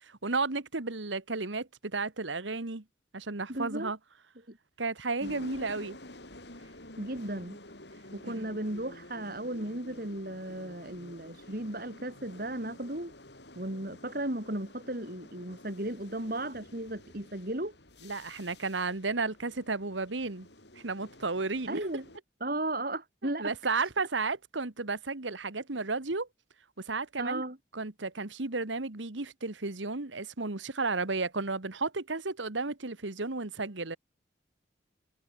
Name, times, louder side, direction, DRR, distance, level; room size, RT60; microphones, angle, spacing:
voice 1, 0.0-2.8 3.1-4.0 4.8-6.0 8.2-8.3 18.0-20.5 20.7-21.8 23.2-26.3 26.8-27.4 27.7-34.0, right 3 dB, 85° right, 1.7 m, -33 dB
voice 2, 3.5-3.9 4.5-4.6 5.2-5.4 7.0-7.6 8.1-13.1 13.5-17.7 21.7-22.0 22.4-23.5 27.2-27.6, right 1 dB, 50° right, 3.3 m, -35 dB
sound 1, 5.2-22.2, left 1 dB, 65° left, 6.8 m, -51 dB
head